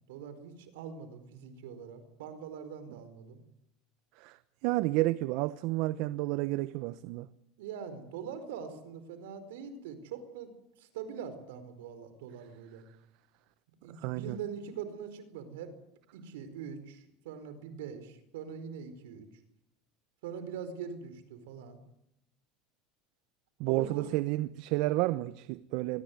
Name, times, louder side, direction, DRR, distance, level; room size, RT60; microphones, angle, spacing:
voice 1, 0.1-3.4 7.6-10.5 10.8-12.8 13.8-15.7 16.1-19.3 20.2-21.8 23.7-24.1, right 7 dB, 85° right, 4.6 m, -42 dB
voice 2, 4.6-7.3 14.0-14.4 23.6-26.0, right 18 dB, 70° right, 0.9 m, -31 dB
22.5 x 19.5 x 9.5 m
supercardioid pair, 110°, 0 cm